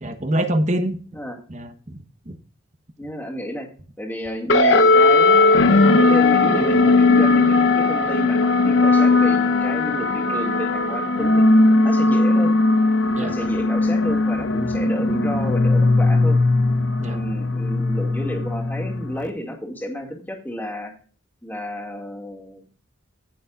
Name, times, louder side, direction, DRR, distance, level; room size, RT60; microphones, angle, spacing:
voice 1, 0.0-1.0 1.5-2.3 13.1-13.4 17.0-17.2, right 1 dB, 35° right, 7 dB, 1.1 m, -25 dB
voice 2, 3.0-3.7 4.0-11.4 11.8-12.5 13.2-16.4 17.0-20.9 21.4-22.7, equal, 10° left, 0 dB, 2.2 m, -31 dB
sound 1, 4.5-19.3, left 3 dB, 70° left, 0.9 m, -18 dB
17.0 x 6.9 x 2.5 m, 0.40 s
head